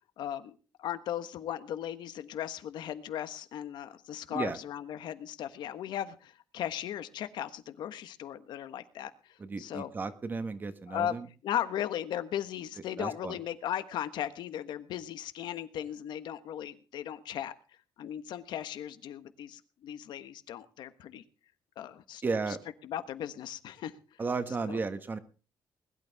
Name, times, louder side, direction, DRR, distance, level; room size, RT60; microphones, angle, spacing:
voice 1, 0.2-9.9 10.9-11.2 11.4-17.5 18.0-21.2 21.8-22.6 22.8-23.9 24.7-24.8, left 10 dB, 90° left, 11 dB, 1.4 m, -37 dB
voice 2, 9.4-11.3 13.0-13.4 22.2-22.6 24.2-25.2, right 4 dB, 25° right, 10 dB, 1.5 m, -34 dB
21.0 x 12.0 x 3.5 m, 0.34 s
cardioid pair, 165°, 7 cm